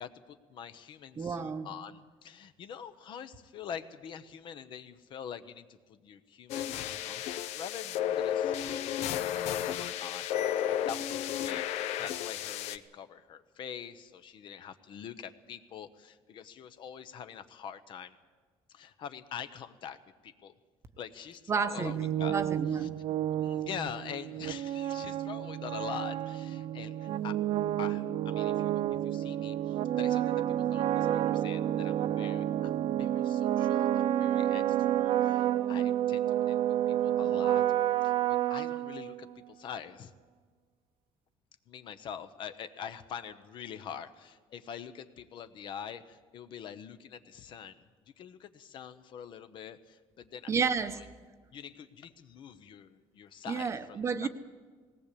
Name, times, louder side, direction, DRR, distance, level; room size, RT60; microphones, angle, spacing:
voice 1, 0.0-10.4 10.7-11.7 12.0-18.1 18.7-20.0 20.2-20.5 21.0-22.4 22.8-22.9 23.4-27.4 27.8-36.6 36.9-37.6 38.0-40.1 41.7-47.8 48.2-50.5 50.9-51.0 51.5-54.3, left 8 dB, 45° left, 11 dB, 0.9 m, -45 dB
voice 2, 1.2-1.7 21.5-21.9 22.3-22.9 50.5-51.0 53.5-54.3, right 5 dB, 25° right, 10 dB, 0.9 m, -31 dB
sound 1, 6.5-12.8, left 10 dB, 75° left, 0.9 m, -33 dB
sound 2, 21.8-39.4, right 12 dB, 55° right, 0.5 m, -30 dB
19.0 x 18.0 x 8.5 m, 1.5 s
cardioid pair, 175°, 11 cm